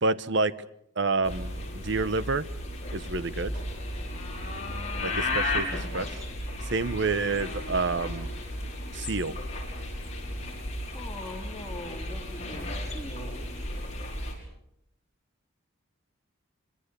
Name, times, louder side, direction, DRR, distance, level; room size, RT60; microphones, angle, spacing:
voice 1, 0.0-0.5 1.0-2.5 2.9-3.5 5.0-5.7 5.9-6.2 6.7-8.3 8.9-9.3, right 3 dB, 60° right, 15 dB, 1.0 m, -28 dB
sound 1, 1.2-14.3, left 1 dB, 35° left, 6.0 m, -34 dB
voice 2, 4.0-4.3 10.9-13.7, left 1 dB, 15° left, 1 dB, 2.5 m, -42 dB
25.0 x 24.5 x 6.8 m, 0.78 s
head